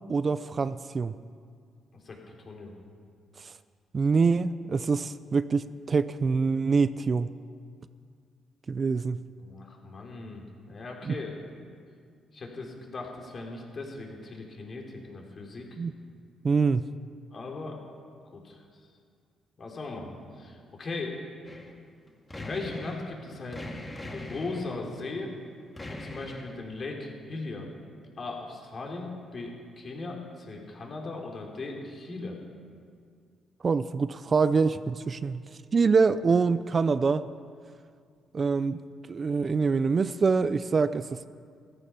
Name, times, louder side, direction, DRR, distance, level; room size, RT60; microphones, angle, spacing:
voice 1, 0.1-1.1 3.4-3.5 3.9-7.3 8.7-9.3 11.0-11.1 15.8-15.9 16.4-16.9 33.6-35.4 35.7-37.2 38.3-38.8 39.1-41.3, right 4 dB, 40° right, 14 dB, 0.4 m, -25 dB
voice 2, 1.9-2.7 9.4-11.7 12.3-15.7 17.3-17.8 18.3-18.6 19.6-21.2 22.4-23.7 24.1-25.3 25.8-27.7 28.2-32.4, left 3 dB, 45° left, 0 dB, 3.4 m, -38 dB
sound 1, 21.4-21.7 22.1-23.2 23.5-24.8 25.7-26.5, left 1 dB, 20° left, 2.2 m, -41 dB
14.5 x 14.0 x 5.7 m, 2.2 s
cardioid pair, 90°, 0 cm